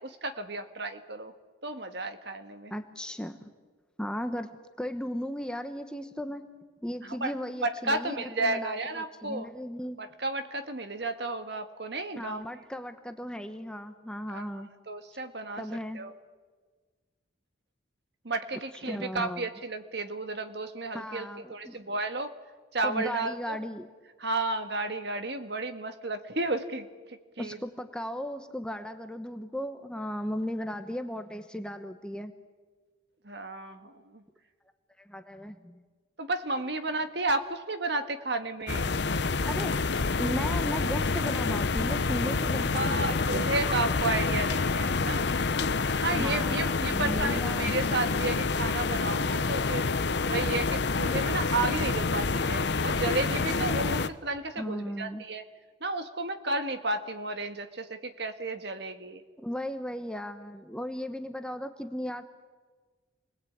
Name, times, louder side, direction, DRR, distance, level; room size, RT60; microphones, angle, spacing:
voice 1, 0.0-1.3 1.6-2.7 7.2-7.3 7.6-9.5 10.0-12.4 14.3-14.4 14.9-15.6 15.9-16.1 18.2-22.3 22.7-23.6 24.2-27.6 33.2-34.2 36.2-38.9 42.7-45.3 46.0-49.9 50.3-55.4 55.8-59.2, right 2 dB, 55° right, 8 dB, 1.7 m, -32 dB
voice 2, 2.7-3.5 4.0-6.5 6.8-10.0 12.2-14.7 15.6-16.0 18.8-19.5 20.9-21.9 22.8-23.9 27.4-32.3 35.0-35.8 39.4-39.7 40.2-43.5 46.1-47.9 54.6-55.2 59.4-62.2, equal, 5° left, 7 dB, 1.0 m, -36 dB
sound 1, 38.7-54.1, left 4 dB, 60° left, 0.8 m, -28 dB
28.5 x 21.0 x 8.7 m, 1.4 s
head